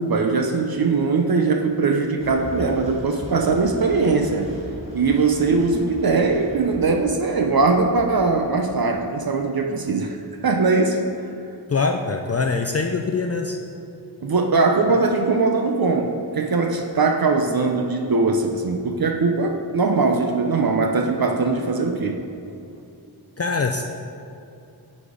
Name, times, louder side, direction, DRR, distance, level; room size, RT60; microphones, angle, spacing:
voice 1, 0.0-4.5 4.9-10.2 10.4-11.0 14.2-22.2, right 3 dB, 55° right, 3 dB, 0.7 m, -21 dB
sound 1, 2.2-8.7, equal, 15° right, 2.0 m, -38 dB
voice 2, 11.7-13.6 23.4-23.8, left 4 dB, 35° left, 4 dB, 0.5 m, -23 dB
10.5 x 4.2 x 4.9 m, 2.6 s
cardioid pair, 50°, 43 cm